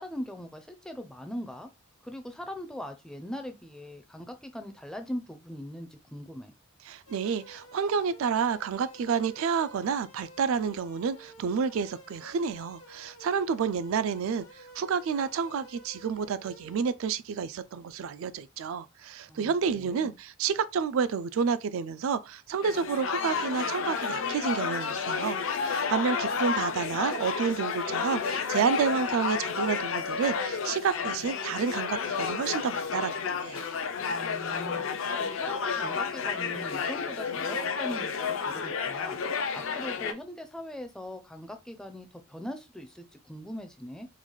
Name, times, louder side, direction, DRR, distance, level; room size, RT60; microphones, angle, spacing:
voice 1, 0.0-1.7 2.0-6.5 19.3-20.1 34.1-44.1, left 1 dB, 5° left, 0.4 m, -41 dB
voice 2, 6.9-33.7, right 6 dB, 70° right, 0.3 m, -30 dB
sound 1, 7.1-16.8, equal, 80° left, 1.0 m, -52 dB
sound 2, 22.6-40.1, left 5 dB, 65° left, 0.5 m, -31 dB
3.8 x 2.3 x 3.1 m
head